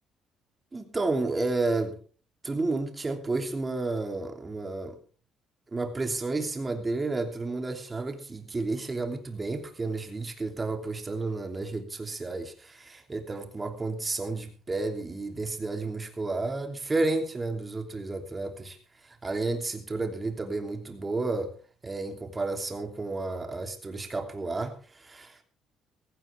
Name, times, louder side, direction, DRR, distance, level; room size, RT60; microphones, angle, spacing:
voice 1, 0.7-2.0 2.4-5.0 5.7-21.5 21.8-25.4, right 3 dB, 20° right, 3.0 m, -31 dB
16.5 x 16.0 x 3.5 m
cardioid pair, 110°, 0 cm